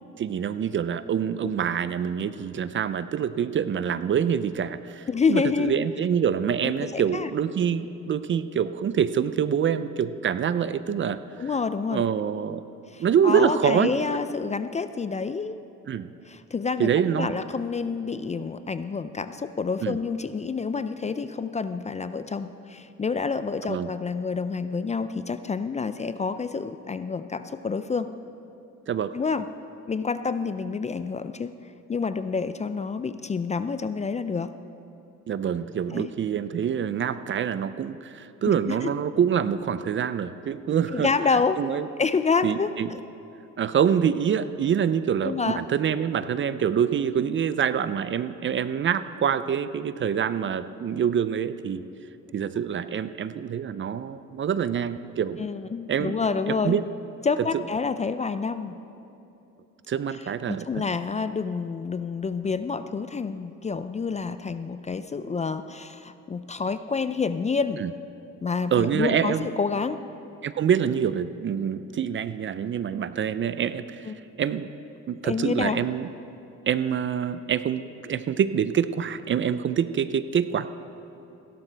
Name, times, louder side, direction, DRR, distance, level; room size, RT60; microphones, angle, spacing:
voice 1, 0.2-11.2 11.9-12.6 13.0-13.9 15.9-16.1 16.8-17.3 19.8-20.0 23.7-23.9 28.9-29.1 35.3-41.1 41.6-41.9 42.4-42.9 43.6-51.8 52.3-55.4 55.9-56.1 56.5-56.8 57.5-57.6 59.9-60.7 67.8-67.9 68.7-69.4 70.4-74.1 74.4-74.7 75.1-76.1 76.7-80.7, right 8 dB, 40° right, 13 dB, 0.5 m, -26 dB
voice 2, 5.1-5.7 6.6-7.3 11.4-12.0 12.9-15.6 16.3-28.1 29.1-29.5 29.9-31.5 31.9-34.5 35.9-36.1 38.7-38.9 40.9-41.6 42.0-43.0 45.2-45.6 55.4-56.8 57.2-58.8 60.5-67.8 68.4-70.0 74.1-74.2 75.2-75.8, left 5 dB, 25° left, 12 dB, 0.4 m, -28 dB
16.5 x 12.0 x 3.4 m, 3.0 s
cardioid pair, 90°, 30 cm